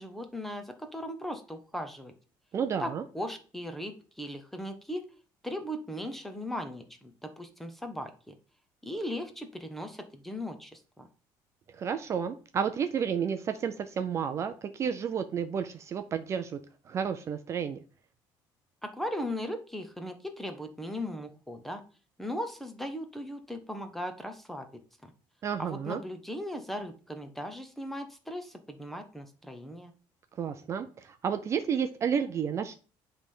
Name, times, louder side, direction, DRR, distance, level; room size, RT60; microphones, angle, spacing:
voice 1, 0.0-2.1 2.8-5.1 5.4-8.3 8.8-11.1 18.8-21.8 22.2-25.1 25.6-29.9, equal, ahead, 8 dB, 0.9 m, -38 dB
voice 2, 2.5-3.0 11.8-16.6 16.9-17.8 25.4-26.0 30.4-32.7, right 7 dB, 30° right, 9 dB, 0.5 m, -31 dB
9.8 x 3.4 x 5.5 m, 0.38 s
cardioid pair, 160°, 9 cm